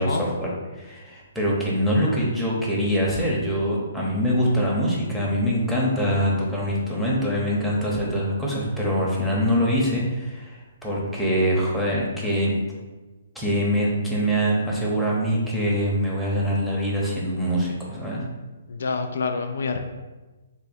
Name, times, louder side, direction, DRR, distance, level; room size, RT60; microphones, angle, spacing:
voice 1, 0.0-12.5 13.3-18.2, equal, ahead, -5 dB, 0.8 m, -24 dB
voice 2, 18.7-19.8, left 4 dB, 75° left, 6 dB, 0.3 m, -27 dB
3.5 x 2.2 x 4.2 m, 1.2 s
hypercardioid pair, 150°, 0 cm